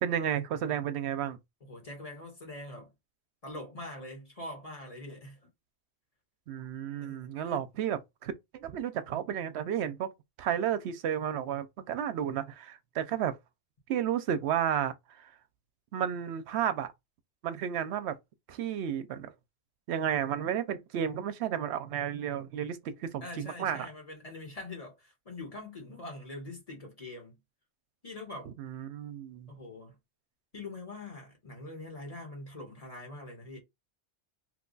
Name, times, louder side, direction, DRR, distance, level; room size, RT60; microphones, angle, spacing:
voice 1, 0.0-1.4 6.5-10.1 10.4-13.4 13.9-15.3 15.9-16.9 17.4-18.1 18.5-19.3 19.9-23.9 28.5-29.5, right 9 dB, 75° right, 0.9 m, -32 dB
voice 2, 1.6-2.9 3.4-5.4 7.0-7.2 7.4-7.6 23.2-27.4 28.0-28.5 29.5-30.0 30.5-33.6, left 2 dB, 35° left, 1.2 m, -43 dB
3.1 x 2.3 x 3.8 m
omnidirectional pair, 1.1 m